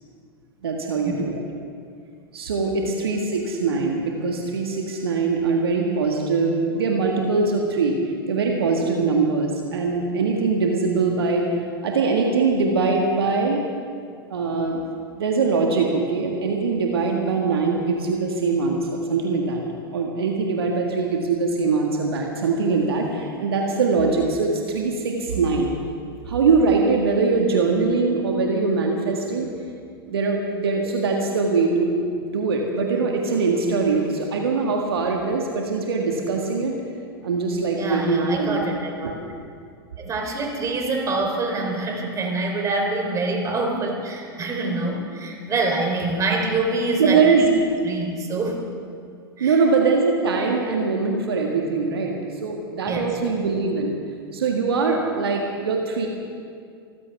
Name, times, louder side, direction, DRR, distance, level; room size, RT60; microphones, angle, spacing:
voice 1, 0.6-1.4 2.3-8.0 8.3-11.4 11.8-13.6 14.3-14.8 15.2-19.6 19.9-25.7 26.3-29.5 30.1-36.7 37.2-38.6 39.0-39.1 47.0-47.5 49.4-52.1 52.4-54.0 54.3-56.1, right 4 dB, 75° right, 1 dB, 1.8 m, -22 dB
voice 2, 37.8-39.1 40.0-47.5 47.8-48.6 49.4-49.6 52.9-53.1, right 2 dB, 25° right, 1 dB, 3.6 m, -25 dB
26.0 x 15.0 x 3.5 m, 2.2 s
figure-of-eight pair, 95°, 13 cm